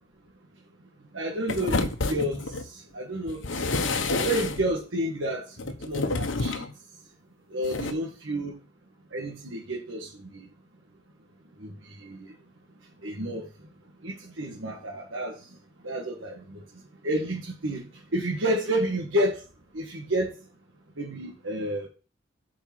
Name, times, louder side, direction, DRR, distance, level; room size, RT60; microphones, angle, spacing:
voice 1, 1.1-3.4 4.2-5.5 5.8-6.6 7.5-8.5 9.1-10.5 11.6-12.3 13.0-13.5 14.0-15.4 15.8-16.6 17.0-17.9 18.1-19.4 19.7-20.3 21.0-21.9, right 1 dB, 85° right, -2 dB, 1.6 m, -30 dB
sound 1, 1.5-2.7 3.3-4.7 5.6-6.7 7.6-7.9, left 3 dB, 80° left, 1.1 m, -29 dB
7.6 x 5.0 x 5.9 m, 0.35 s
head